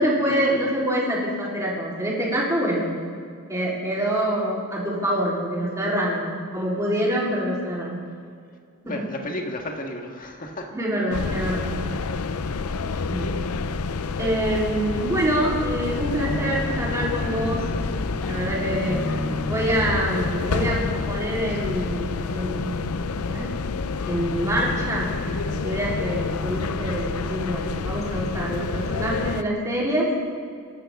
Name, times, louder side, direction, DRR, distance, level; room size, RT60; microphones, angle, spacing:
voice 1, 0.0-2.9 3.5-8.0 8.9-9.1 10.7-11.7 13.1-13.6 14.2-17.7 18.3-19.1 19.5-22.9 23.2-23.5 24.1-30.1, right 1 dB, 15° right, -5 dB, 3.9 m, -26 dB
voice 2, 8.8-10.7, left 1 dB, 40° left, 2 dB, 1.7 m, -33 dB
sound 1, 11.1-29.4, left 4 dB, 75° left, 0.6 m, -28 dB
sound 2, 16.3-21.4, left 1 dB, 5° left, 1.1 m, -34 dB
26.0 x 12.0 x 3.7 m, 2.2 s
head